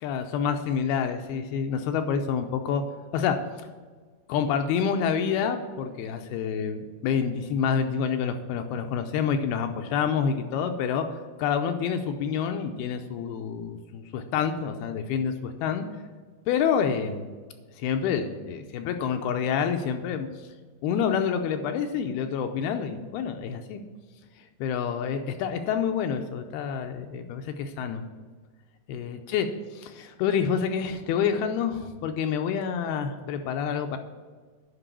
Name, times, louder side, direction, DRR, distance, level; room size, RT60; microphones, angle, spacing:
voice 1, 0.0-2.8 3.1-3.4 4.3-11.1 11.4-15.9 16.5-17.3 17.8-20.3 20.8-23.8 24.6-28.0 28.9-29.5 29.7-34.0, left 7 dB, 80° left, 6 dB, 2.4 m, -28 dB
9.9 x 5.5 x 6.8 m, 1.5 s
omnidirectional pair, 4.8 m